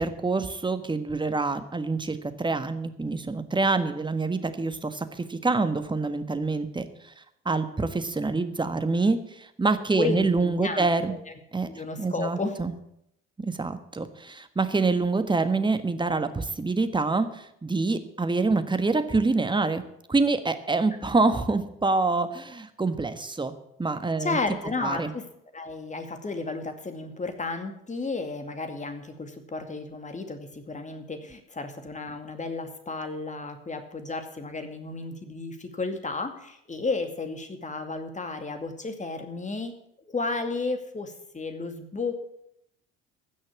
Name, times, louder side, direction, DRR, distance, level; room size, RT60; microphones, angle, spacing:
voice 1, 0.0-6.9 7.4-11.2 11.5-11.7 12.0-12.7 13.4-23.5 23.8-24.4 24.8-25.1, right 3 dB, 15° right, 9 dB, 1.4 m, -26 dB
voice 2, 9.9-11.3 11.6-12.6 21.0-21.3 24.2-25.2 25.5-39.8 40.1-42.2, left 3 dB, 25° left, 7 dB, 2.3 m, -33 dB
15.5 x 6.3 x 8.5 m, 0.77 s
hypercardioid pair, 60°, 31 cm